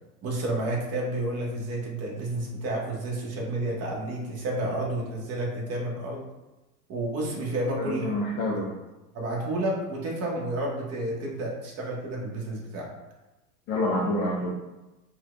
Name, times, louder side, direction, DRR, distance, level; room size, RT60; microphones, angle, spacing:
voice 1, 0.2-6.3 6.9-8.7 9.1-12.9, right 1 dB, 30° right, -2 dB, 1.1 m, -31 dB
voice 2, 7.8-8.8 13.7-14.5, left 1 dB, 25° left, -3 dB, 0.3 m, -27 dB
4.2 x 2.3 x 2.5 m, 1.0 s
hypercardioid pair, 90°, 46 cm